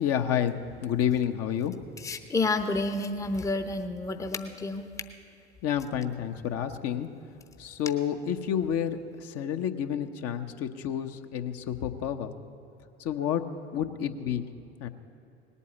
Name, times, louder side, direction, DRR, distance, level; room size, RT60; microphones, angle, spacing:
voice 1, 0.0-1.7 5.6-7.1 7.6-12.3 13.0-13.4 13.7-14.4 14.8-14.9, left 9 dB, 45° left, 7 dB, 0.9 m, -29 dB
voice 2, 2.0-4.9, left 2 dB, 10° left, 8 dB, 0.8 m, -30 dB
18.5 x 8.4 x 8.3 m, 2.8 s
figure-of-eight pair, 70°, 33 cm